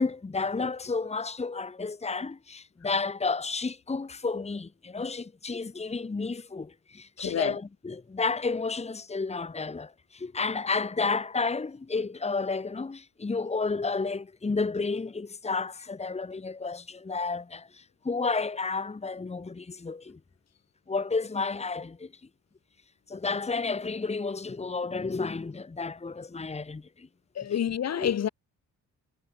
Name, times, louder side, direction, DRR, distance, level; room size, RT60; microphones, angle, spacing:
voice 1, 0.0-20.2 20.9-22.1 23.1-27.1 27.9-28.1, left 4 dB, 20° left, 2.0 m, -31 dB
voice 2, 7.2-7.5 27.4-28.3, left 9 dB, 60° left, 3.2 m, -28 dB
cardioid pair, 90°, 30 cm